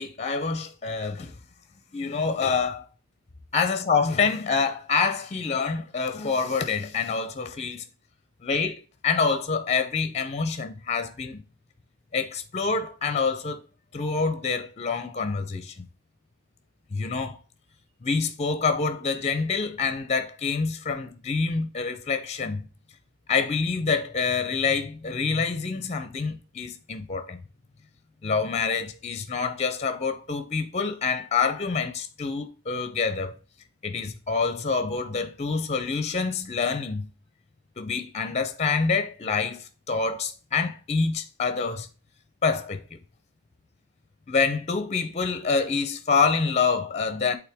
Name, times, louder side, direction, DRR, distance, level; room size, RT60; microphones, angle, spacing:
voice 1, 0.0-1.3 1.9-2.9 3.5-7.8 8.4-11.4 12.1-13.6 13.9-15.9 16.9-17.4 18.0-22.7 23.3-27.4 28.2-33.4 33.8-37.1 37.8-41.9 42.4-43.0 44.3-47.4, left 5 dB, 30° left, 0.6 m, -26 dB
8.6 x 3.7 x 3.5 m
head